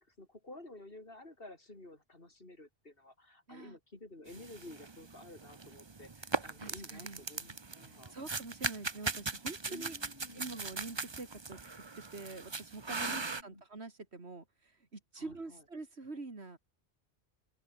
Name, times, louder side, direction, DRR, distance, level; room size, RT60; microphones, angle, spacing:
voice 1, 0.0-8.1 9.7-10.5 13.0-13.6 15.1-15.6, left 2 dB, 60° left, 4.5 m, -52 dB
sound 1, 4.3-13.4, right 4 dB, 25° right, 0.9 m, -40 dB
voice 2, 6.6-7.2 7.9-10.0 10.3-11.6 12.1-14.4 14.9-16.6, right 3 dB, 80° right, 3.1 m, -45 dB
open air
omnidirectional pair, 1.1 m